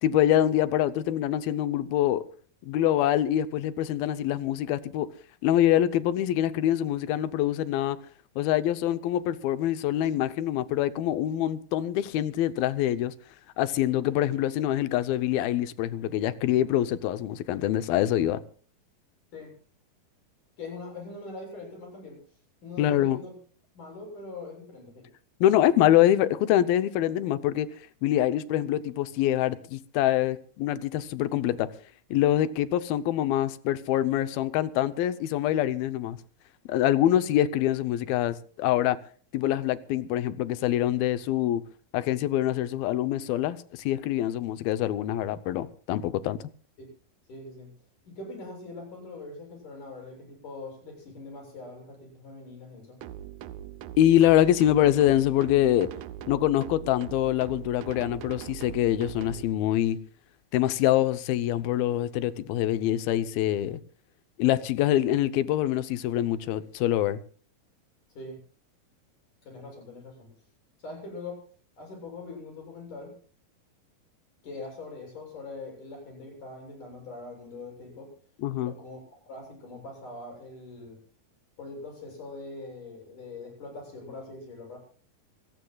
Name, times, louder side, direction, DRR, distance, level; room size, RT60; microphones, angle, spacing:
voice 1, 0.0-2.2 2.6-5.1 5.4-8.0 8.4-13.1 13.6-18.4 22.8-23.2 25.4-27.7 28.0-31.7 32.1-36.2 36.7-39.0 39.3-41.6 41.9-46.4 54.0-55.9 56.3-60.0 60.5-63.8 64.4-67.2 78.4-78.7, left 12 dB, 80° left, 2.6 m, -25 dB
voice 2, 20.6-22.2 22.6-23.3 23.8-25.1 37.0-37.3 47.3-47.7 48.1-53.0 68.1-68.4 69.5-70.3 70.8-71.4 71.8-73.1 74.4-78.1 78.5-81.0 81.6-84.8, left 3 dB, 55° left, 9.1 m, -42 dB
sound 1, 53.0-59.4, right 11 dB, 75° right, 1.9 m, -41 dB
26.0 x 16.5 x 2.3 m
omnidirectional pair, 4.3 m